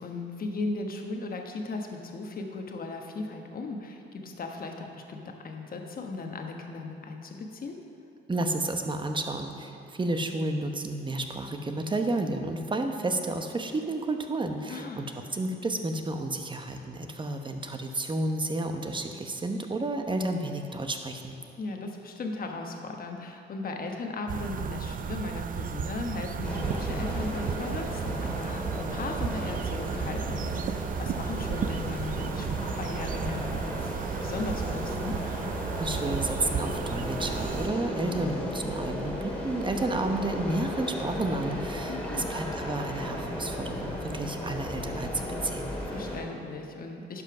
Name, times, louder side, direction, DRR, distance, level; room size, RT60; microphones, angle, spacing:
voice 1, 0.0-7.7 14.7-15.0 21.6-33.7 34.2-35.2 41.9-42.3 45.9-47.2, left 3 dB, 45° left, 3 dB, 1.2 m, -37 dB
voice 2, 8.3-15.0 15.3-21.4 35.8-45.7, right 2 dB, 25° right, 5 dB, 0.9 m, -31 dB
sound 1, 24.3-37.7, right 7 dB, 45° right, 0.4 m, -34 dB
sound 2, 26.4-46.2, equal, 5° left, 2.1 m, -35 dB
11.0 x 5.5 x 6.0 m, 2.8 s
cardioid pair, 90°, 20 cm